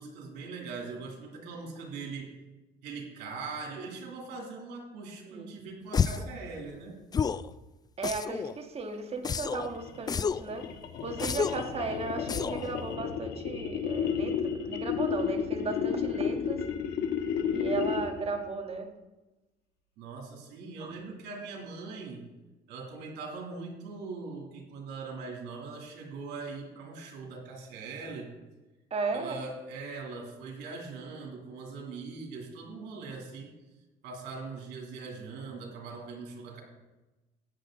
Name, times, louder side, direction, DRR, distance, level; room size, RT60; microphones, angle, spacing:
voice 1, 0.0-2.3 2.8-7.0 20.0-22.2 22.7-28.3 29.1-33.5 34.0-36.6, right 4 dB, 85° right, 1 dB, 2.8 m, -41 dB
sound 1, 5.9-6.3 7.1-7.5 8.0-8.5 9.2-9.7 10.1-10.5 11.2-11.7 12.3-12.7, left 6 dB, 25° left, 0.3 m, -30 dB
voice 2, 8.0-10.7 11.0-16.7 17.5-18.9 20.8-20.9 28.9-29.4, right 4 dB, 35° right, 5 dB, 1.6 m, -35 dB
sound 2, 9.6-18.3, left 7 dB, 80° left, 1.4 m, -32 dB
15.5 x 9.3 x 3.8 m, 1.1 s
cardioid pair, 110°, 17 cm